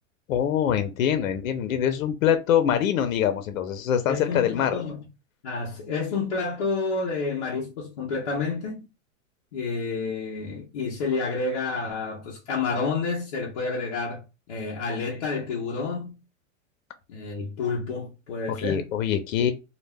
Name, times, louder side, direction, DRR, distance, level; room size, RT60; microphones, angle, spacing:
voice 1, 0.3-4.8 18.5-19.5, left 9 dB, 80° left, 0.6 m, -24 dB
voice 2, 4.1-5.0 5.4-8.9 9.5-14.2 14.5-16.2 17.1-18.8, left 4 dB, 30° left, 0.4 m, -29 dB
2.2 x 2.1 x 3.3 m
supercardioid pair, 170°, 40 cm